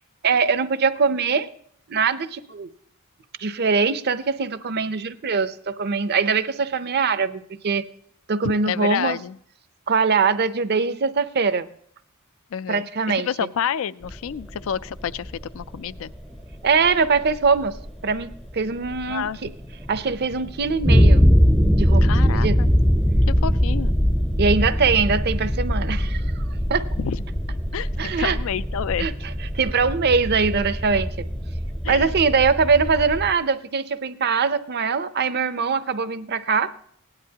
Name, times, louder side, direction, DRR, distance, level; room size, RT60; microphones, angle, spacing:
voice 1, 0.2-1.5 1.9-2.7 3.4-7.9 8.3-9.2 9.9-11.7 12.7-13.3 16.6-17.7 18.0-19.5 19.9-21.3 21.8-22.6 24.4-26.4 26.7-26.9 28.0-28.4 29.0-29.1 29.5-31.3 31.9-36.7, right 5 dB, 50° right, 13 dB, 0.6 m, -22 dB
voice 2, 8.4-9.4 12.5-12.9 13.2-16.1 19.1-19.4 22.0-22.7 23.3-23.9 27.0-27.2 27.7-29.1 31.8-32.1, left 8 dB, 65° left, 18 dB, 0.4 m, -29 dB
sound 1, 14.0-33.3, equal, ahead, 0.5 m, -22 dB
17.0 x 10.5 x 2.8 m, 0.63 s
head